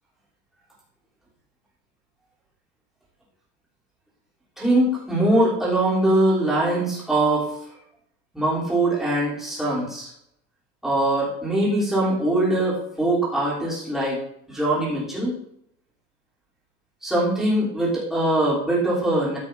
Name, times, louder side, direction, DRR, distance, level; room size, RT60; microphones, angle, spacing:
voice 1, 4.6-7.5 8.3-10.1 10.8-14.2 14.5-15.3 17.0-19.4, right 1 dB, ahead, -9 dB, 3.2 m, -22 dB
14.0 x 6.4 x 2.6 m, 0.76 s
cardioid pair, 175°, 32 cm